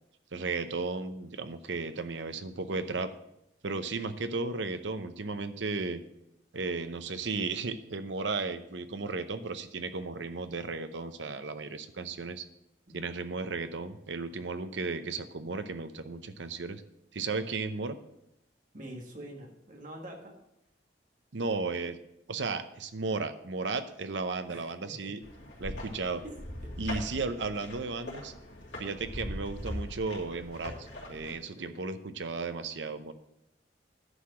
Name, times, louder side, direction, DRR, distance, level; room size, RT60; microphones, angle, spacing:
voice 1, 0.3-3.1 3.6-6.0 6.5-12.4 12.9-16.8 17.1-18.0 21.3-22.0 22.3-25.2 25.6-26.2 26.8-28.3 28.8-33.1, right 3 dB, 75° right, 10 dB, 0.7 m, -34 dB
voice 2, 18.7-20.3 24.5-25.1 26.2-26.3 26.6-27.0 31.6-31.7, right 1 dB, 45° right, 1 dB, 1.8 m, -45 dB
sound 1, 25.2-31.3, left 1 dB, 75° left, 2.7 m, -41 dB
10.5 x 4.8 x 7.5 m, 0.83 s
head